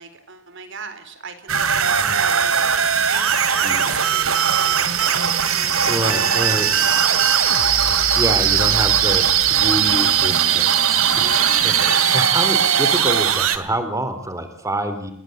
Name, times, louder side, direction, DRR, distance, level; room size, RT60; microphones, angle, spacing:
voice 1, 0.0-2.5 3.1-7.2 11.1-12.2, right 5 dB, 60° right, 10 dB, 4.1 m, -36 dB
sound 1, 1.5-13.6, right 8 dB, 75° right, 2.6 m, -18 dB
voice 2, 3.6-3.9 5.8-6.7 7.8-15.1, right 1 dB, 15° right, 9 dB, 3.6 m, -27 dB
29.5 x 21.5 x 8.1 m, 0.77 s
head